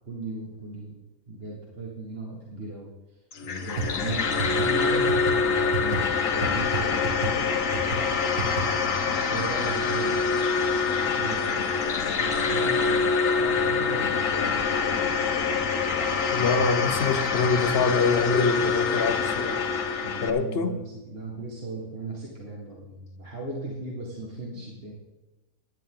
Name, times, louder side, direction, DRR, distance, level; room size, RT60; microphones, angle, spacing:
voice 1, 0.1-1.0 1.3-2.9 3.4-7.6 8.2-10.3 10.7-14.6 20.0-20.8 21.1-24.9, right 2 dB, 40° right, 2.0 m, -37 dB
sound 1, 3.3-20.3, left 5 dB, 65° left, 1.4 m, -25 dB
sound 2, 3.8-3.9 4.1-4.2 4.4-4.6 5.1-5.3 5.7-6.0 6.4-6.5 6.7-6.8 7.0-7.3 7.7-8.0 8.4-8.6, right 8 dB, 80° right, 2.5 m, -29 dB
voice 2, 16.3-19.6 20.2-20.8, left 4 dB, 45° left, 1.1 m, -25 dB
16.0 x 11.0 x 3.8 m
omnidirectional pair, 1.5 m